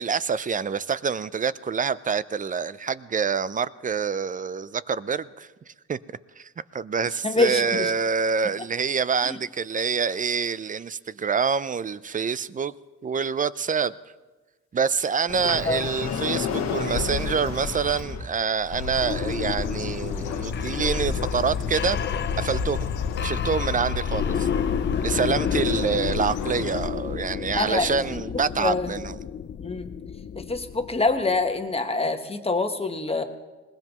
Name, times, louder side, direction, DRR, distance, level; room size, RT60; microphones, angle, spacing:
voice 1, 0.0-5.5 5.9-6.0 6.4-12.7 13.0-13.9 14.7-22.0 22.4-22.9 23.2-24.5 25.0-29.2, right 6 dB, 25° right, 17 dB, 0.5 m, -26 dB
voice 2, 7.2-7.9 9.3-9.4 15.6-15.8 27.6-28.0 28.6-28.9 29.6-29.9 30.3-33.2, left 3 dB, 20° left, 6 dB, 1.3 m, -25 dB
Sliding door, 15.3-18.3, left 6 dB, 60° left, 1.3 m, -29 dB
sound 1, 18.6-31.4, left 7 dB, 35° left, 0.6 m, -30 dB
Bird, 18.7-26.9, left 5 dB, 90° left, 1.1 m, -32 dB
21.5 x 19.5 x 3.0 m, 1.2 s
cardioid pair, 90°, 30 cm